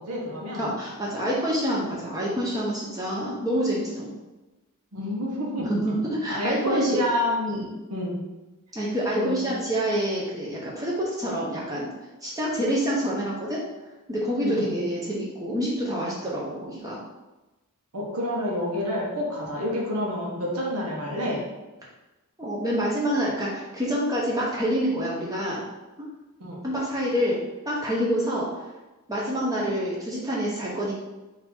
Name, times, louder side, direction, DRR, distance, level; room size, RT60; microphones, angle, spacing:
voice 1, 0.0-0.7 4.9-5.7 6.3-7.6 7.9-8.2 9.1-9.7 14.4-14.8 17.9-21.4 26.4-26.6, left 1 dB, 80° right, -3 dB, 1.0 m, -28 dB
voice 2, 0.6-4.1 5.6-7.0 7.5-7.7 8.7-11.9 12.2-13.6 14.1-17.0 22.4-25.6 26.0-26.1 26.6-27.4 27.7-28.5 29.1-30.9, equal, 15° right, -5 dB, 0.7 m, -27 dB
4.0 x 2.7 x 4.2 m, 1.1 s
head